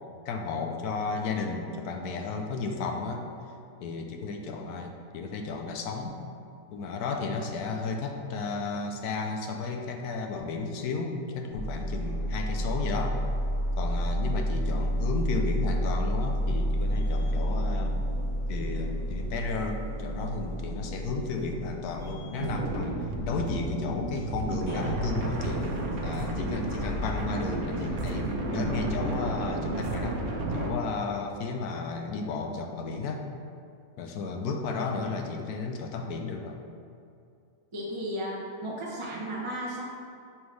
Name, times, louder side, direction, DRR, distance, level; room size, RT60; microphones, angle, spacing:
voice 1, 0.2-3.2 3.8-6.2 6.7-13.2 13.8-18.0 18.5-25.7 26.0-30.2 30.5-33.2 34.0-36.6, left 4 dB, 85° left, 3 dB, 1.2 m, -33 dB
sound 1, 11.5-29.5, equal, 65° left, 1.7 m, -32 dB
sound 2, 22.4-30.7, right 2 dB, 60° right, 1.0 m, -32 dB
voice 2, 37.7-39.8, equal, 30° right, -6 dB, 0.6 m, -34 dB
6.0 x 5.4 x 3.2 m, 2.5 s
omnidirectional pair, 1.6 m